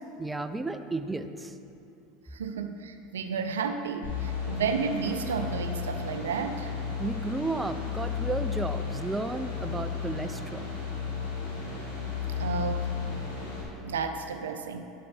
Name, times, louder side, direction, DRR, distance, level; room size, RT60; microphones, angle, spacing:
voice 1, 0.2-1.6 7.0-10.7, right 2 dB, 10° right, 9 dB, 0.5 m, -33 dB
voice 2, 2.3-6.7 12.4-12.9 13.8-14.9, right 5 dB, 80° right, 7 dB, 0.5 m, -32 dB
sound 1, 4.0-13.6, left 6 dB, 90° left, 2.1 m, -34 dB
11.0 x 6.7 x 3.4 m, 2.7 s
hypercardioid pair, 80°, 0 cm